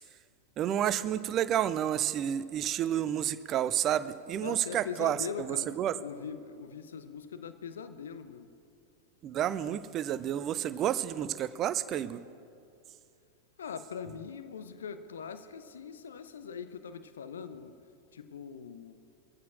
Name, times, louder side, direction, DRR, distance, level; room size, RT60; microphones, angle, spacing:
voice 1, 0.6-6.1 9.2-12.2, right 10 dB, 30° right, 15 dB, 0.6 m, -30 dB
voice 2, 4.4-8.5 13.6-17.7 18.1-18.9, left 6 dB, 65° left, 11 dB, 0.7 m, -42 dB
24.0 x 15.0 x 2.5 m, 2.4 s
figure-of-eight pair, 90°, 0 cm